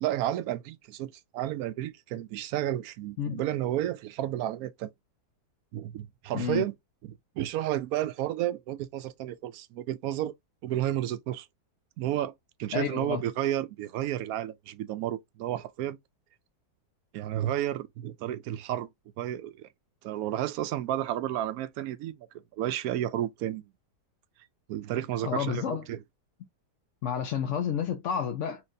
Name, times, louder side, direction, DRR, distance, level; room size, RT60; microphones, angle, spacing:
voice 1, 0.0-4.9 5.7-6.7 7.0-10.3 10.6-11.5 12.0-12.3 12.6-16.0 17.1-18.9 19.2-19.7 20.0-22.2 22.5-23.7 24.7-26.0, right 12 dB, 70° right, 0.9 m, -31 dB
voice 2, 6.3-6.7 12.7-13.2 25.2-25.8 27.0-28.6, left 8 dB, 60° left, 0.8 m, -30 dB
4.5 x 3.1 x 2.6 m
omnidirectional pair, 1.8 m